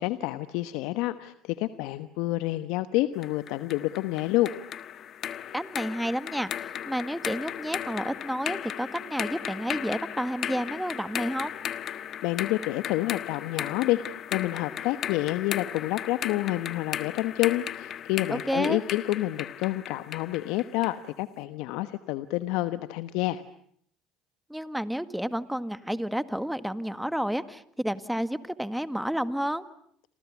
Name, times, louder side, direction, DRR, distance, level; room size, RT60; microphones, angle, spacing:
voice 1, 0.0-4.5 12.2-14.0 14.3-23.4, left 17 dB, 70° left, 12 dB, 1.2 m, -28 dB
sound 1, 3.2-21.0, left 10 dB, 50° left, 1.4 m, -36 dB
voice 2, 5.5-11.5 18.3-18.8 24.5-29.6, equal, 5° right, 12 dB, 1.9 m, -30 dB
29.0 x 28.0 x 7.3 m, 0.67 s
hypercardioid pair, 75°, 0 cm